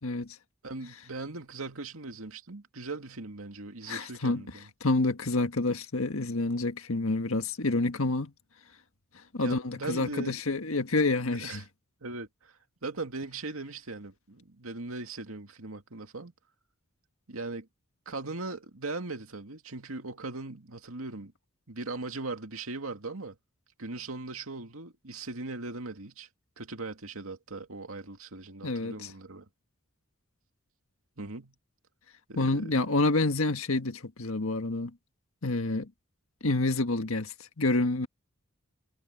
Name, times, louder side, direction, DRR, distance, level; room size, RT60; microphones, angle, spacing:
voice 1, 0.0-0.4 3.9-4.4 4.8-8.3 9.3-11.6 28.6-29.1 32.4-34.9 35.4-35.9 36.4-38.1, left 2 dB, 80° left, 1.6 m, -28 dB
voice 2, 0.6-4.7 9.4-10.4 11.4-11.6 12.0-16.3 17.3-17.7 18.1-21.3 21.7-23.4 23.8-26.3 26.6-29.5 31.2-31.5 32.3-32.9, right 3 dB, 85° right, 2.2 m, -39 dB
head